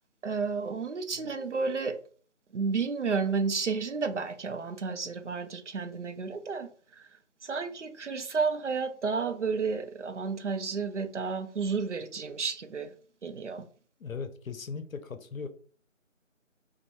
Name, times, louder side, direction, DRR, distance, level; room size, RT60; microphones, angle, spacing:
voice 1, 0.2-2.0 2.5-7.0 7.4-12.9 13.2-13.6, right 5 dB, 65° right, 0.5 m, -31 dB
voice 2, 14.0-15.5, left 5 dB, 85° left, 0.6 m, -38 dB
3.1 x 2.1 x 3.0 m
figure-of-eight pair, 165°, 39 cm